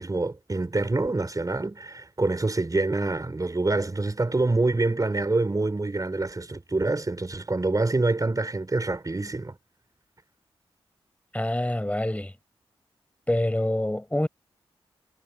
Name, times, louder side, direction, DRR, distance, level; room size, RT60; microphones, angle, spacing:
voice 1, 0.0-9.6, right 2 dB, 30° right, 5.9 m, -26 dB
voice 2, 11.3-12.3 13.3-14.3, left 1 dB, 10° left, 5.1 m, -26 dB
supercardioid pair, 45°, 11 cm